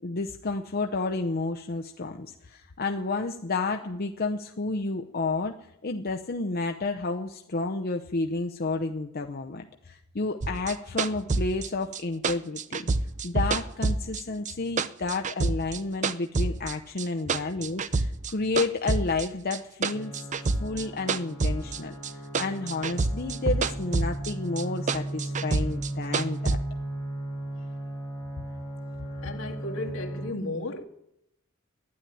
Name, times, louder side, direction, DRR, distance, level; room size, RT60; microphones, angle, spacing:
voice 1, 0.0-5.5 5.8-12.9 13.2-20.3 20.6-26.6, left 3 dB, 45° left, 0.7 m, -31 dB
sound 1, 10.4-14.5 14.8-16.7 17.0-18.3 18.6-22.1 22.3-24.3 24.6-26.6, right 3 dB, 35° right, 0.5 m, -27 dB
sound 2, 19.9-30.3, right 1 dB, 20° right, 5.9 m, -36 dB
voice 2, 29.2-30.8, left 2 dB, 75° left, 2.0 m, -34 dB
12.5 x 10.0 x 9.8 m
head